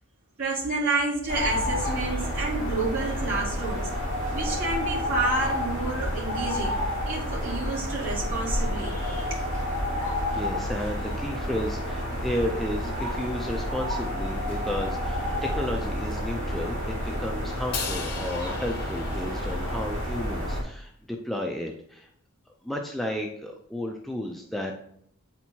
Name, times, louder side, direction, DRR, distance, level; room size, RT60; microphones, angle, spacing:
voice 1, 0.4-3.9 4.3-6.8 7.0-9.4, right 3 dB, 60° right, -7 dB, 2.5 m, -29 dB
sound 1, 1.3-20.6, left 1 dB, 35° right, 2.3 m, -30 dB
voice 2, 10.3-22.1 22.6-24.8, left 1 dB, ahead, 1 dB, 0.4 m, -33 dB
Crash cymbal, 17.7-20.1, left 5 dB, 45° left, 1.0 m, -37 dB
8.1 x 4.4 x 2.8 m, 0.68 s
head